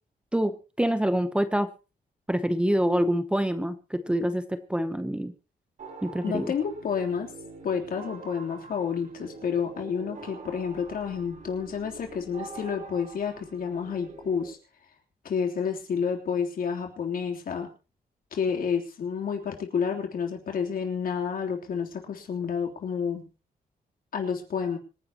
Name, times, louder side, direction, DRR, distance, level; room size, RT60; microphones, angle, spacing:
voice 1, 0.3-1.7 2.3-4.4 4.7-5.3 6.0-6.5, equal, 5° right, 10 dB, 0.8 m, -26 dB
sound 1, 5.8-14.5, right 4 dB, 55° right, 5.5 m, -45 dB
voice 2, 6.2-7.3 7.6-14.6 15.2-17.7 18.3-23.3 24.1-24.8, left 6 dB, 65° left, 2 dB, 3.4 m, -30 dB
25.5 x 10.5 x 3.0 m, 0.32 s
wide cardioid pair, 150°, 16 cm